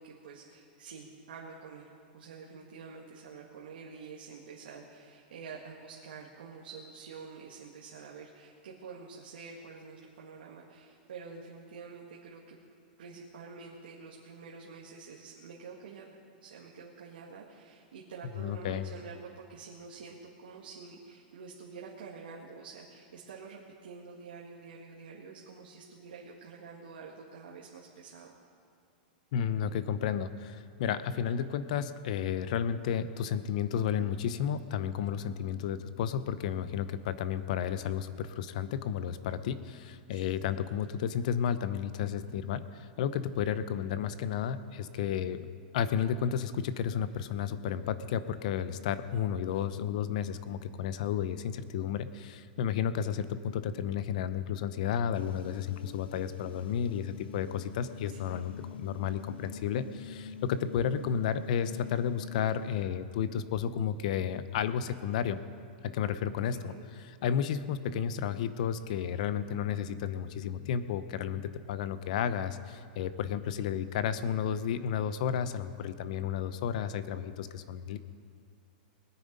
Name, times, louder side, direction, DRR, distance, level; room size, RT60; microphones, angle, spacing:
voice 1, 0.0-12.6 13.0-28.3 40.1-40.6 58.1-58.5 66.5-66.8, right 5 dB, 90° right, -3 dB, 1.9 m, -48 dB
voice 2, 18.4-18.9 29.3-45.5 45.7-65.4 65.8-66.7 67.0-78.0, left 8 dB, 50° left, 13 dB, 0.7 m, -32 dB
sound 1, 55.1-62.8, left 6 dB, 85° left, 1.1 m, -45 dB
21.0 x 9.2 x 5.3 m, 2.3 s
supercardioid pair, 165°, 5 cm